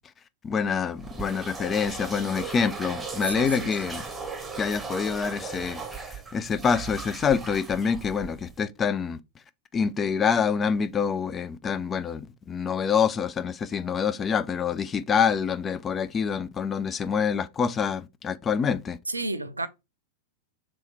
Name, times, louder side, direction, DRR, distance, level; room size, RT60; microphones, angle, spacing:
voice 1, 0.4-4.0 4.6-5.8 6.3-9.2 9.7-19.0, left 6 dB, 20° left, 0.3 m, -26 dB
sound 1, 1.0-8.6, right 4 dB, 5° right, 1.0 m, -37 dB
voice 2, 3.3-3.7 19.1-19.7, right 2 dB, 80° right, 0.4 m, -31 dB
3.1 x 3.1 x 4.3 m
figure-of-eight pair, 90°, 0 cm